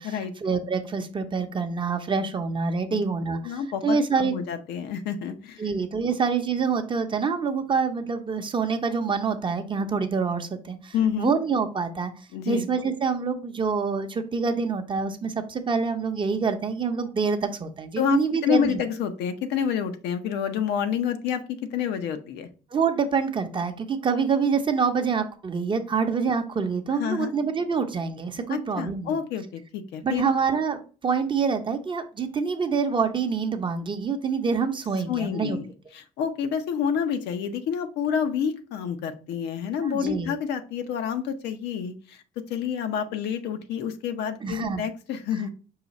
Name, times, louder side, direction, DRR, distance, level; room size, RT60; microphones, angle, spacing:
voice 1, 0.4-4.3 5.6-12.1 12.5-18.8 22.7-29.2 30.0-35.6 39.8-40.3 44.4-44.8, right 5 dB, 30° right, 7 dB, 0.6 m, -26 dB
voice 2, 3.4-5.6 10.9-11.3 12.3-12.7 18.0-22.5 27.0-27.3 28.5-30.3 35.1-42.2 42.5-45.5, left 7 dB, 80° left, 8 dB, 0.7 m, -28 dB
5.6 x 2.4 x 4.0 m, 0.38 s
cardioid pair, 110°, 17 cm